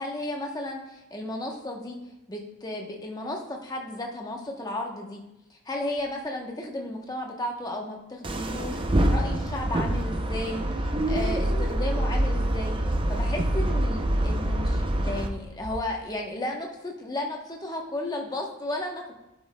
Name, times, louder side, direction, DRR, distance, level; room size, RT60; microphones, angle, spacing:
voice 1, 0.0-2.0 2.3-5.2 5.5-19.1, left 1 dB, 15° left, 1 dB, 0.9 m, -34 dB
sound 1, 5.9-7.5 7.8-8.1 8.6-10.5 10.7-11.4 11.7-11.8 12.0-13.1 13.4-13.5 14.1-14.2 15.2-15.3 15.6-16.6, equal, 50° left, 3.2 m, -45 dB
sound 2, 8.2-15.3, right 1 dB, 25° right, 0.5 m, -26 dB
11.0 x 8.5 x 2.2 m, 0.94 s
head